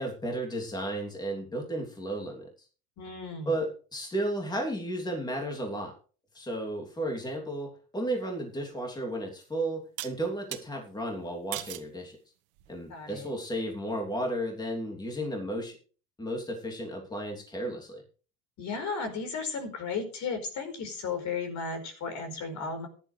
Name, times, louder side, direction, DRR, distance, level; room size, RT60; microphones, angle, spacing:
voice 1, 0.0-2.5 3.4-5.9 6.3-12.2 12.7-15.8 16.2-18.0, right 1 dB, 10° left, 1 dB, 3.0 m, -33 dB
voice 2, 3.0-3.6 12.9-13.3 18.6-22.9, left 4 dB, 45° left, 7 dB, 4.7 m, -34 dB
sound 1, 8.6-8.7 10.0-10.6 11.5-11.9 12.6-13.0, right 17 dB, 75° right, 1.7 m, -38 dB
15.0 x 11.0 x 3.4 m, 0.39 s
supercardioid pair, 115°, 41 cm